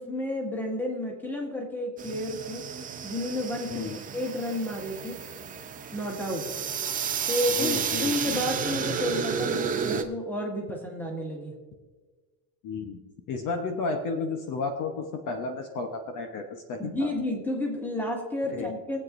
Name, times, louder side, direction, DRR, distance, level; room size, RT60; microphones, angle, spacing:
voice 1, 0.0-2.6 3.0-5.2 5.9-6.5 7.3-11.6 16.8-19.0, left 1 dB, 5° left, 0 dB, 1.9 m, -31 dB
sound 1, 2.0-10.0, right 7 dB, 20° right, 0.6 m, -32 dB
voice 2, 7.5-8.4 12.6-13.0 13.3-17.1 18.5-18.7, left 4 dB, 45° left, 4 dB, 1.0 m, -32 dB
22.0 x 8.1 x 2.6 m, 1.3 s
cardioid pair, 140°, 44 cm